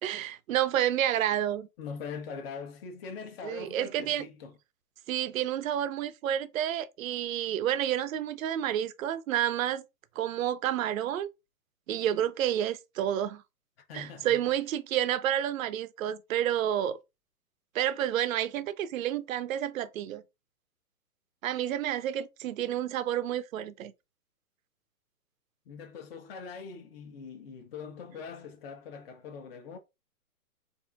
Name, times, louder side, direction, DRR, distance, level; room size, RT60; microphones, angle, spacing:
voice 1, 0.0-1.7 3.4-4.3 5.1-9.8 10.2-11.3 11.9-13.4 13.9-17.0 17.7-20.2 21.4-23.9, right 11 dB, 60° right, 0.5 m, -30 dB
voice 2, 1.8-4.6 13.9-14.4 25.7-29.8, left 5 dB, 40° left, 0.9 m, -42 dB
4.5 x 2.6 x 2.4 m
hypercardioid pair, 135°, 46 cm